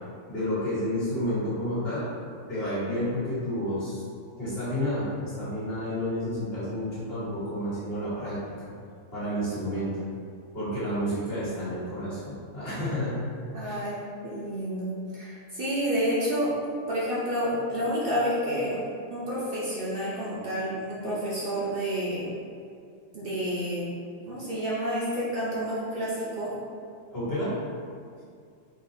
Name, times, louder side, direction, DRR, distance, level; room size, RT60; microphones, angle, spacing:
voice 1, 0.3-2.1 2.5-4.0 4.4-8.7 9.1-9.9 10.5-13.2 13.6-13.8 27.1-27.5, equal, 45° left, -10 dB, 1.8 m, -30 dB
voice 2, 13.5-16.5 16.9-18.8 19.1-22.3 23.1-23.9 24.3-26.5, equal, 50° right, -9 dB, 1.0 m, -29 dB
4.5 x 4.2 x 2.7 m, 2.3 s
omnidirectional pair, 1.4 m